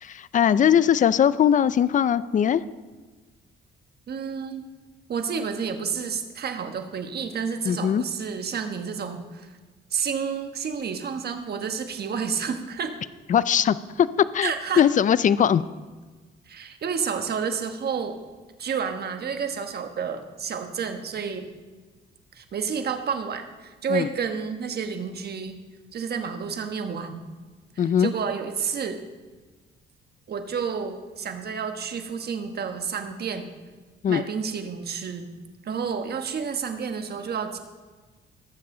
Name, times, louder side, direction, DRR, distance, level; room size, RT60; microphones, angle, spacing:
voice 1, 0.0-2.6 7.6-8.0 13.3-14.1 14.3-14.5 14.8-15.6 23.9-24.1 27.8-28.1 34.0-34.2, left 9 dB, 40° left, 17 dB, 0.4 m, -20 dB
voice 2, 4.1-4.7 5.1-9.5 9.9-12.9 14.4-14.9 16.5-18.2 18.6-21.5 22.3-25.6 25.9-27.2 27.7-29.0 30.3-33.5 34.1-35.3 35.6-37.6, right 6 dB, 55° right, 6 dB, 1.4 m, -30 dB
19.0 x 7.5 x 3.9 m, 1.3 s
cardioid pair, 90°, 20 cm